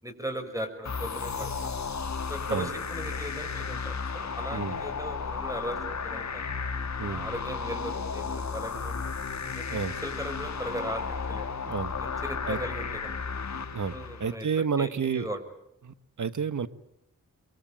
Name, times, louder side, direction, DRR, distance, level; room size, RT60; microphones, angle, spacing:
voice 1, 0.0-1.8 2.3-6.4 7.0-9.1 9.4-11.5 12.0-13.1 13.9-15.4, right 1 dB, 10° right, 7 dB, 6.0 m, -38 dB
sound 1, 0.8-14.3, left 5 dB, 55° left, 1.6 m, -34 dB
voice 2, 4.5-4.8 7.0-7.3 9.7-10.0 11.7-12.0 12.5-12.6 13.5-13.9 14.2-15.3 15.8-16.7, right 6 dB, 65° right, 14 dB, 1.4 m, -30 dB
24.0 x 23.0 x 9.0 m, 0.77 s
cardioid pair, 45°, 33 cm